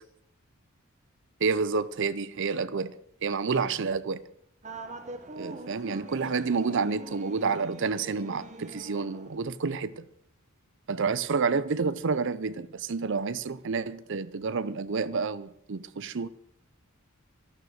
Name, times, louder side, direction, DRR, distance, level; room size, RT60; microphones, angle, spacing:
voice 1, 1.4-3.0 3.2-4.2 5.4-10.1 10.9-16.3, right 4 dB, 65° right, 0.6 m, -29 dB
sound 1, 4.6-9.5, right 2 dB, 35° right, 1.4 m, -44 dB
12.5 x 12.0 x 6.6 m
head